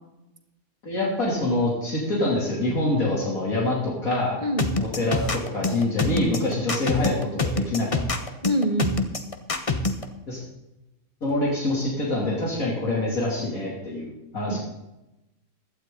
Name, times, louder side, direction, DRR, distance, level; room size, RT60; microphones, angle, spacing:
voice 1, 0.8-4.4 4.8-8.0 10.3-10.4 11.2-14.6, left 2 dB, 75° left, -4 dB, 3.4 m, -25 dB
voice 2, 4.4-4.8 8.4-9.0 14.5-14.6, equal, 30° right, 5 dB, 1.7 m, -25 dB
sound 1, 4.6-10.0, left 3 dB, 25° left, 1.0 m, -25 dB
16.5 x 12.0 x 3.9 m, 0.94 s
omnidirectional pair, 1.5 m